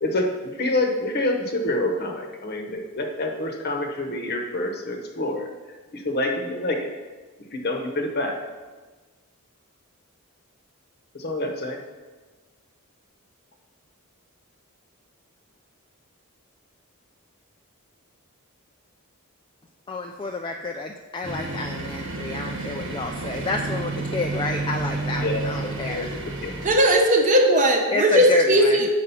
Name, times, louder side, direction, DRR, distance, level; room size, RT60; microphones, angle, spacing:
voice 1, 0.0-5.5 5.9-6.9 7.5-8.4 11.1-11.8 25.2-26.5, left 1 dB, 45° left, 3 dB, 0.9 m, -27 dB
voice 2, 19.9-26.1 27.9-28.9, left 3 dB, 20° left, 2 dB, 0.3 m, -29 dB
sound 1, 21.2-26.8, right 2 dB, 60° right, 1.1 m, -30 dB
voice 3, 26.6-28.9, equal, 35° right, 2 dB, 0.9 m, -18 dB
6.9 x 5.0 x 5.6 m, 1.3 s
head